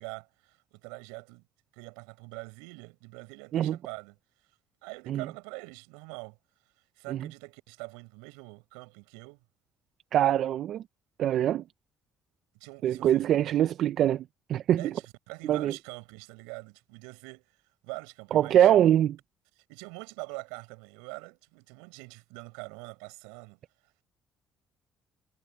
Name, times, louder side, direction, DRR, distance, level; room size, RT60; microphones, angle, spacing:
voice 1, 0.0-1.4 1.7-4.2 4.8-6.4 7.0-9.4 12.6-13.5 14.8-18.7 19.6-23.6, right 33 dB, 85° right, 7.2 m, -44 dB
voice 2, 10.1-10.8 11.2-11.6 12.8-14.2 14.5-14.9 15.4-15.7 18.3-19.2, right 11 dB, 65° right, 0.9 m, -23 dB
hypercardioid pair, 60°, 0 cm